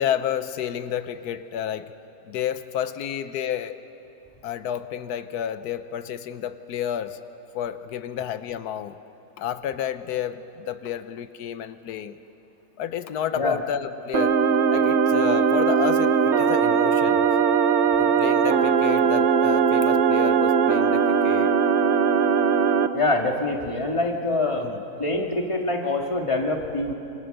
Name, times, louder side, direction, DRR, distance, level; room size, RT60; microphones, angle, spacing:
voice 1, 0.0-1.9 2.3-3.8 4.4-7.2 7.5-9.0 9.4-12.1 12.8-14.4 14.7-17.2 18.0-21.5 24.5-24.8, left 9 dB, 90° left, 12 dB, 1.3 m, -30 dB
sound 1, 14.1-22.9, right 6 dB, 55° right, 1.0 m, -20 dB
voice 2, 22.9-24.7 25.0-26.9, left 2 dB, 20° left, 1 dB, 2.0 m, -25 dB
27.0 x 25.5 x 6.6 m, 2.9 s
omnidirectional pair, 1.6 m